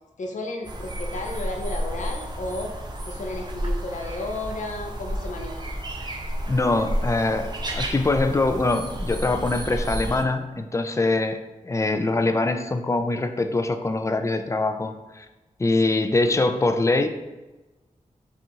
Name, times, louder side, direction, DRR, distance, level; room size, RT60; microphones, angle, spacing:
voice 1, 0.2-2.7 3.1-5.7, left 2 dB, 75° left, 2 dB, 0.6 m, -33 dB
sound 1, 0.6-10.2, right 1 dB, 35° right, 0.6 m, -31 dB
voice 2, 6.5-15.3 15.6-17.1, left 2 dB, 25° left, 8 dB, 0.3 m, -23 dB
5.3 x 2.4 x 2.9 m, 1.1 s
wide cardioid pair, 90°, 13 cm